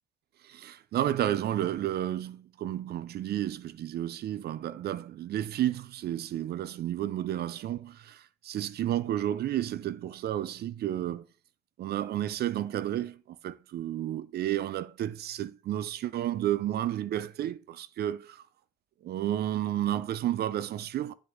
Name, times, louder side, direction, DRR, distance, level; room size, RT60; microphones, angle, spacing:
voice 1, 0.4-11.2 11.8-18.4 19.0-21.1, right 12 dB, 70° right, 0.5 m, -31 dB
9.6 x 3.5 x 3.6 m
cardioid pair, 140°, 17 cm